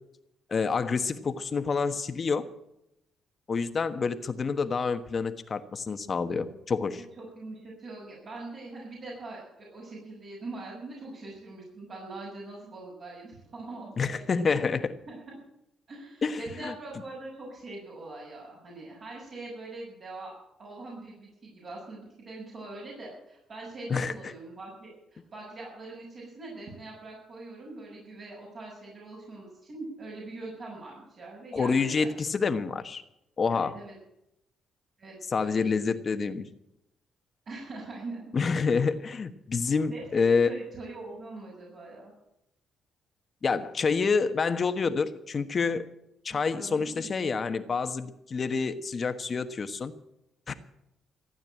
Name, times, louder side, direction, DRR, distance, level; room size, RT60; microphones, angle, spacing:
voice 1, 0.5-2.5 3.5-7.0 14.0-14.9 16.2-16.7 23.9-24.3 31.5-33.0 33.4-33.7 35.3-36.4 38.3-40.5 43.4-45.8 46.2-49.9 50.5-50.6, left 5 dB, 40° left, 10 dB, 1.3 m, -28 dB
voice 2, 6.9-14.2 15.1-15.4 15.9-20.3 20.6-32.1 33.5-33.9 35.0-35.9 37.5-38.8 39.9-42.1 46.5-47.1, right 2 dB, 55° right, -4 dB, 6.6 m, -42 dB
15.5 x 9.1 x 8.9 m, 0.84 s
cardioid pair, 90°, 0 cm